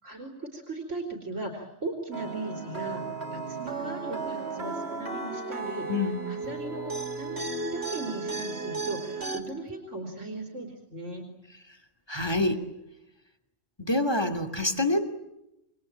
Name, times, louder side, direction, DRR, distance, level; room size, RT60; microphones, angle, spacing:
voice 1, 0.0-3.0 3.3-5.9 6.3-11.3, right 2 dB, 70° right, 3 dB, 4.0 m, -37 dB
sound 1, 2.1-9.4, right 4 dB, 55° right, 3.5 m, -34 dB
voice 2, 5.9-6.2 12.1-12.6 13.8-15.1, left 2 dB, 20° left, 6 dB, 2.7 m, -26 dB
28.0 x 22.0 x 8.9 m, 0.88 s
omnidirectional pair, 1.3 m